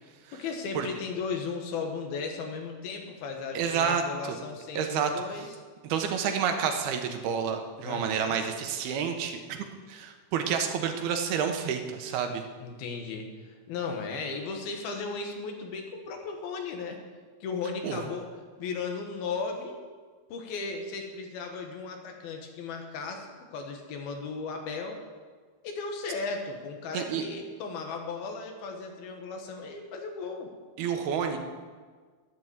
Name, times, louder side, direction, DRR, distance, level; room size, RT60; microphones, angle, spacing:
voice 1, 0.3-5.5 7.8-8.4 12.6-17.0 17.4-18.3 18.6-19.8 20.3-23.3 23.5-25.0 25.6-30.5, left 4 dB, 80° left, 3 dB, 3.4 m, -36 dB
voice 2, 3.5-4.0 4.8-5.1 5.8-12.4 17.8-18.0 26.9-27.2 30.8-31.4, right 7 dB, 90° right, 5 dB, 3.1 m, -29 dB
11.0 x 11.0 x 7.4 m, 1.5 s
omnidirectional pair, 4.3 m